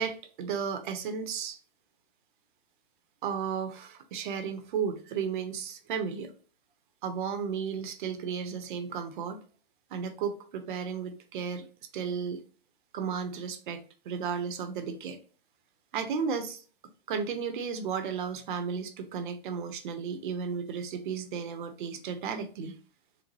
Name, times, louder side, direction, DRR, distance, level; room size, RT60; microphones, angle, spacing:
voice 1, 0.0-1.6 3.2-6.3 7.0-9.4 9.9-11.6 11.9-12.4 12.9-15.2 15.9-16.6 17.1-22.7, right 6 dB, 55° right, 0.7 m, -34 dB
3.9 x 2.1 x 3.1 m
hypercardioid pair, 155°, 30 cm